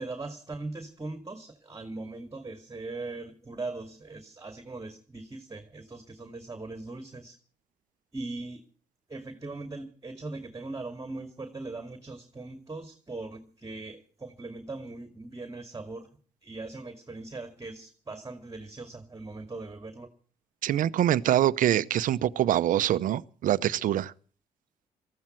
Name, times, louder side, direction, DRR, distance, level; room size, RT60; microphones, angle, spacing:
voice 1, 0.0-7.4 8.1-8.6 9.1-16.1 16.4-20.1, right 3 dB, 20° right, 2.3 m, -40 dB
voice 2, 20.6-24.1, right 12 dB, 65° right, 0.7 m, -24 dB
19.5 x 14.5 x 4.5 m
supercardioid pair, 55°, 15 cm